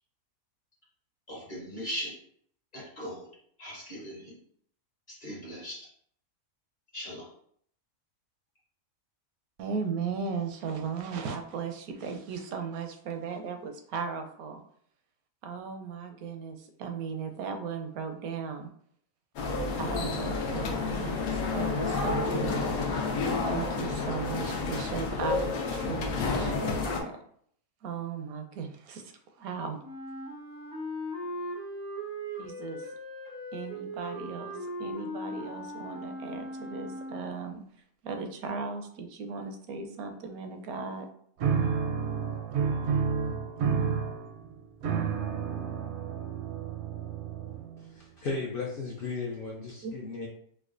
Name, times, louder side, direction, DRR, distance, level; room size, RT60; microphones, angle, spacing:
voice 1, 1.3-2.2 2.7-3.3 3.6-4.4 5.1-5.9 6.9-7.3, equal, 40° left, -4 dB, 0.8 m, -39 dB
voice 2, 9.6-14.6 15.4-18.7 19.8-22.7 23.5-25.4 25.7-27.1 27.8-29.8 32.4-32.8 33.5-37.6 38.0-41.1 49.8-49.9, right 5 dB, 80° right, 6 dB, 1.0 m, -36 dB
sound 1, 19.4-27.0, left 4 dB, 85° left, 1.1 m, -30 dB
Wind instrument woodwind instrument, 29.8-37.5, equal, 35° right, 0.3 m, -39 dB
sound 2, 41.4-47.9, right 6 dB, 65° right, 0.7 m, -30 dB
voice 3, 47.8-50.3, left 3 dB, 65° left, -3 dB, 0.5 m, -35 dB
4.7 x 2.2 x 2.4 m, 0.63 s
omnidirectional pair, 1.5 m